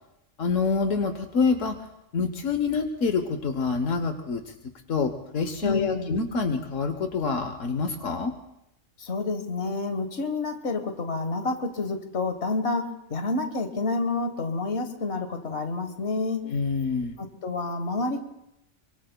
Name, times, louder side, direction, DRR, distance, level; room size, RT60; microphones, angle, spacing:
voice 1, 0.4-1.7 2.1-4.5 4.9-8.3 16.4-17.2, left 5 dB, 85° left, 7 dB, 1.3 m, -26 dB
voice 2, 5.6-6.1 9.0-16.4 17.2-18.2, left 3 dB, 60° left, 7 dB, 1.6 m, -29 dB
25.5 x 24.0 x 2.2 m, 0.86 s
omnidirectional pair, 1.3 m